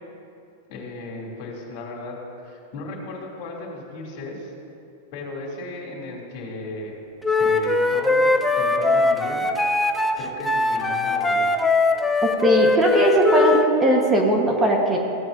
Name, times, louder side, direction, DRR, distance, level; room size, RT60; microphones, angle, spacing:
voice 1, 0.7-4.5 5.1-6.9 7.4-8.3 8.5-9.4 10.2-11.5, left 2 dB, 55° left, -3 dB, 2.6 m, -35 dB
Wind instrument woodwind instrument, 7.2-13.7, left 3 dB, 5° left, 0.6 m, -21 dB
voice 2, 12.4-15.0, right 1 dB, 15° right, 1 dB, 1.1 m, -19 dB
16.0 x 8.8 x 2.6 m, 2.7 s
supercardioid pair, 135°, 0 cm